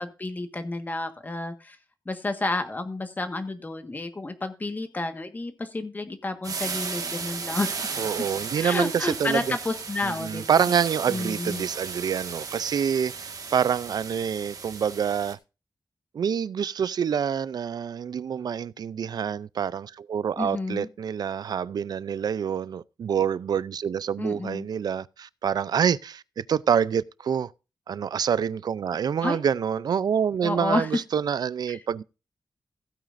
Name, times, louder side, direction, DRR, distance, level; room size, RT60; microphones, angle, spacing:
voice 1, 0.0-1.8 2.0-8.0 8.6-10.7 11.1-11.7 20.4-20.9 24.2-24.7 29.2-29.4 30.4-31.0 31.7-31.8, left 2 dB, 25° left, 1.5 m, -30 dB
sound 1, 6.4-15.3, right 5 dB, 60° right, 1.7 m, -35 dB
voice 2, 8.0-9.6 10.0-15.4 16.1-27.5 27.9-32.0, right 7 dB, 75° right, 0.4 m, -27 dB
16.0 x 9.0 x 2.6 m
wide cardioid pair, 180°, 7 cm